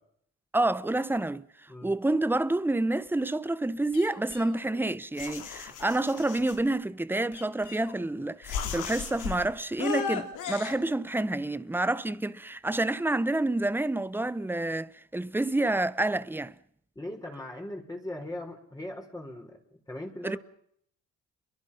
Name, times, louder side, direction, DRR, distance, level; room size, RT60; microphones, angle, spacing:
voice 1, 0.5-16.5 20.2-20.4, right 2 dB, 5° right, 0.9 m, -28 dB
sound 1, 3.9-4.8 5.2-6.6 7.3-8.1 8.4-9.4 9.8-10.7, left 7 dB, 85° left, 3.4 m, -36 dB
voice 2, 16.9-20.4, left 1 dB, 10° left, 4.6 m, -39 dB
29.5 x 23.5 x 5.7 m
cardioid pair, 90°, 30 cm